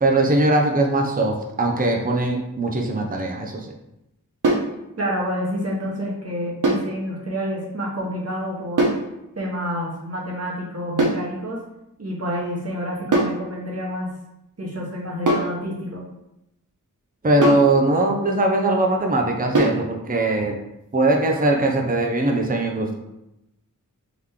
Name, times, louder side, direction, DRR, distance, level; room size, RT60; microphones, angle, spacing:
voice 1, 0.0-3.7 17.2-20.6 20.9-22.9, right 2 dB, 25° right, 1 dB, 0.6 m, -20 dB
sound 1, 4.4-4.7 6.6-6.9 8.8-9.1 11.0-11.3 13.1-13.4 15.3-15.6 17.4-17.7 19.5-19.8, right 2 dB, 65° right, 0.8 m, -20 dB
voice 2, 5.0-8.9 9.4-11.6 12.0-14.1 14.6-16.0, equal, 45° right, -3 dB, 1.3 m, -28 dB
3.7 x 3.0 x 3.7 m, 0.87 s
wide cardioid pair, 50°, 33 cm